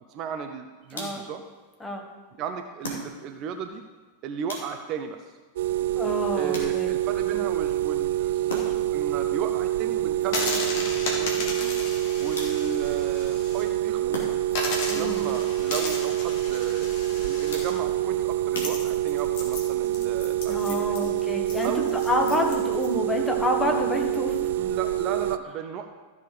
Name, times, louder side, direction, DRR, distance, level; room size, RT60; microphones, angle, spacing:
voice 1, 0.0-1.4 2.4-3.8 4.2-5.4 6.3-11.7 12.2-14.3 14.9-21.1 21.6-22.0 24.6-25.9, right 7 dB, 35° right, 6 dB, 0.7 m, -35 dB
sound 1, 0.9-1.4 2.8-3.5 4.5-5.1 6.5-7.1 8.5-9.0 10.5-11.1 12.3-12.9 14.1-14.7 15.7-16.2 17.5-18.0 18.5-19.3, left 1 dB, 65° left, 2.6 m, -39 dB
voice 2, 0.9-1.2 1.8-2.1 6.0-6.9 14.9-15.3 20.5-24.6, left 1 dB, 10° left, 1 dB, 1.8 m, -28 dB
sound 2, 5.6-25.4, right 13 dB, 55° right, 0.3 m, -26 dB
sound 3, 10.2-13.6 14.0-14.1 14.5-22.9, left 2 dB, 50° left, 2.3 m, -35 dB
14.0 x 6.6 x 5.2 m, 1.3 s
figure-of-eight pair, 90°, 0 cm